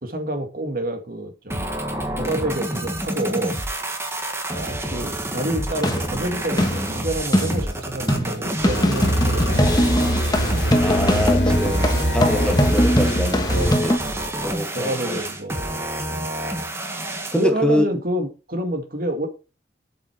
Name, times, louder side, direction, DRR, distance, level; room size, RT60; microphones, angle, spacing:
voice 1, 0.0-1.7 2.1-3.6 4.5-9.8 11.5-11.7 13.5-16.3 17.3-19.3, right 1 dB, 50° right, 2.0 m, -28 dB
sound 1, 1.5-17.5, right 1 dB, 15° right, 1.6 m, -29 dB
sound 2, 5.6-14.0, equal, 20° left, 1.3 m, -22 dB
sound 3, 8.7-13.7, equal, 85° left, 2.9 m, -23 dB
voice 2, 10.8-14.0 14.4-15.2 17.3-17.8, left 1 dB, 5° left, 1.0 m, -25 dB
8.3 x 7.8 x 4.7 m
head